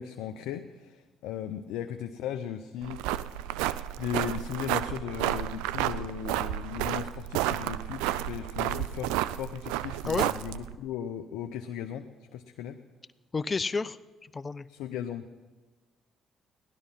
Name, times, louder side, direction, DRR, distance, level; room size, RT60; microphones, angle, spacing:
voice 1, 0.0-3.0 4.0-12.8 14.7-15.3, left 9 dB, 80° left, 7 dB, 0.6 m, -37 dB
sound 1, 2.8-10.8, right 14 dB, 85° right, 0.4 m, -31 dB
voice 2, 13.3-14.7, left 4 dB, 35° left, 18 dB, 0.6 m, -31 dB
16.5 x 11.5 x 5.7 m, 1.3 s
hypercardioid pair, 55°, 0 cm